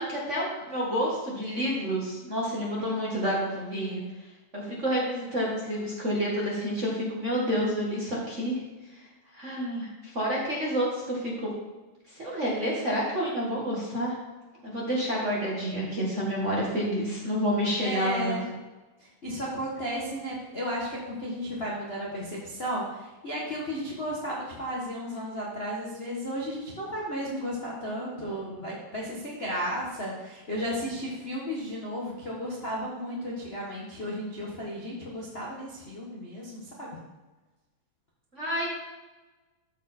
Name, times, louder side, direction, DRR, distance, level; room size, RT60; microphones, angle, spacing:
voice 1, 0.0-4.0 4.5-8.6 8.9-9.0 9.3-11.5 12.1-14.2 14.6-18.4 38.3-38.7, equal, 30° right, -5 dB, 1.5 m, -29 dB
voice 2, 17.8-18.5 19.0-37.0, equal, 40° left, -5 dB, 0.8 m, -34 dB
13.0 x 4.7 x 4.3 m, 1.2 s
omnidirectional pair, 3.5 m